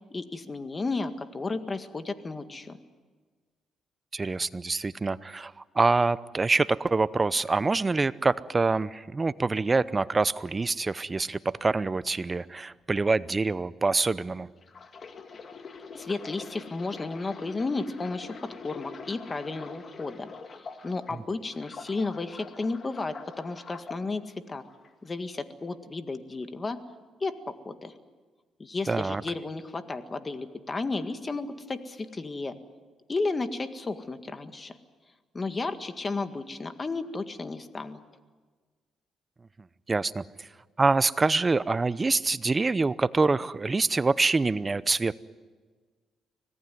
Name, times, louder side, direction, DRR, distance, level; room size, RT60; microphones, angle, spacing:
voice 1, 0.1-2.8 15.9-20.3 20.6-24.6 25.0-26.8 27.2-27.9 28.6-32.6 33.1-34.8 35.3-38.0, left 3 dB, 30° left, 9 dB, 1.9 m, -33 dB
voice 2, 4.1-14.5 28.9-29.2 39.9-40.5 40.8-45.2, right 3 dB, 25° right, 17 dB, 0.7 m, -25 dB
sound 1, 14.6-21.1 21.5-24.0 24.6-24.9, left 5 dB, 45° left, 2.1 m, -44 dB
25.5 x 18.0 x 9.4 m, 1.4 s
cardioid pair, 90°, 0 cm